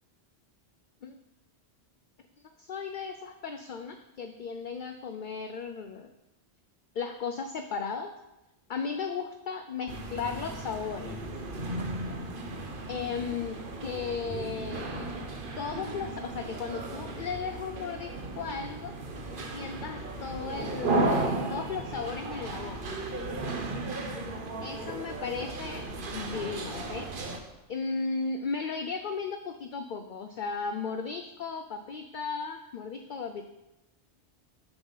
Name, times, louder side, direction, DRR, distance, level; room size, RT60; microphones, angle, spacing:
voice 1, 2.4-6.1 6.9-8.1 8.7-11.2 12.9-15.1 15.6-18.9 19.5-21.1 21.5-22.8 24.6-25.8 26.1-27.1 27.7-33.4, left 5 dB, 55° left, 7 dB, 0.6 m, -35 dB
sound 1, 9.9-27.4, right 2 dB, 50° right, 1.0 m, -35 dB
7.1 x 7.0 x 5.6 m, 0.96 s
omnidirectional pair, 1.2 m